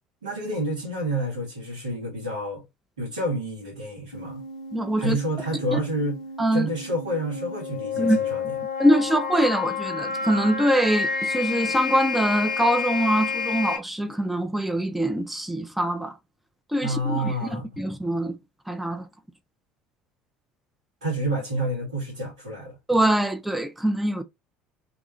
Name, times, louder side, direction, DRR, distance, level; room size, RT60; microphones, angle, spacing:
voice 1, 0.2-2.6 3.0-4.4 5.0-6.2 6.5-8.5 16.8-17.7 21.0-22.8, right 1 dB, 85° right, 1.6 m, -29 dB
sound 1, 4.1-13.8, left 5 dB, 85° left, 0.6 m, -30 dB
voice 2, 4.7-5.2 5.7-5.8 6.4-6.7 8.0-8.2 8.8-16.1 16.7-17.3 17.8-18.4 18.7-19.1 22.9-24.2, right 1 dB, 5° right, 0.5 m, -23 dB
2.8 x 2.3 x 3.8 m
hypercardioid pair, 65°, 4 cm